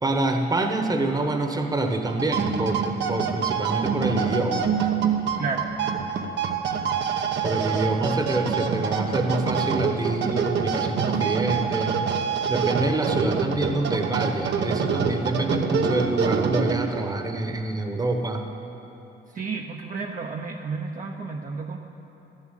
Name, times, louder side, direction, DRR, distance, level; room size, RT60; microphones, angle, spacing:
voice 1, 0.0-4.7 7.4-11.9 12.5-18.4, right 2 dB, 20° right, 4 dB, 1.1 m, -26 dB
sound 1, 2.1-17.1, right 6 dB, 65° right, 0.9 m, -26 dB
voice 2, 19.3-21.8, right 4 dB, 40° right, 1 dB, 0.8 m, -31 dB
12.0 x 7.4 x 9.2 m, 3.0 s
cardioid pair, 90°, 20 cm